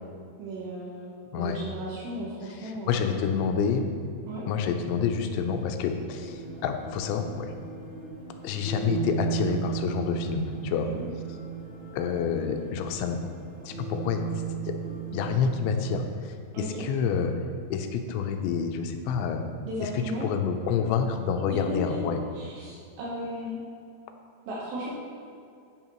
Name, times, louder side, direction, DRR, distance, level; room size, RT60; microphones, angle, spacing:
voice 1, 0.4-3.2 4.3-4.4 11.0-11.1 16.5-16.8 19.6-20.3 21.5-22.0 22.3-23.6 24.5-24.9, right 1 dB, 75° right, -5 dB, 3.2 m, -35 dB
voice 2, 2.4-3.9 4.5-7.5 8.4-10.9 11.9-13.2 13.6-14.2 14.7-14.8 15.1-17.3 17.7-19.4 19.8-22.2, left 6 dB, 90° left, 5 dB, 3.0 m, -28 dB
sound 1, 6.1-16.0, right 7 dB, 35° right, 1.9 m, -36 dB
11.0 x 8.8 x 3.0 m, 2.4 s
omnidirectional pair, 5.1 m